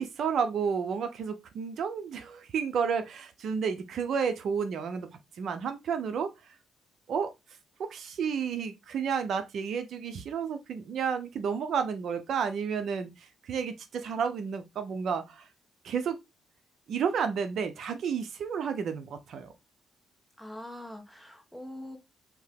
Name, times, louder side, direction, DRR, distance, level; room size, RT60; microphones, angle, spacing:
voice 1, 0.0-5.1 5.4-6.3 7.1-7.3 7.8-13.1 13.4-15.4 15.8-16.2 16.9-19.5, right 6 dB, 65° right, 0.5 m, -31 dB
voice 2, 20.4-22.0, left 1 dB, ahead, 1.0 m, -43 dB
3.5 x 2.8 x 3.2 m
cardioid pair, 90°, 0 cm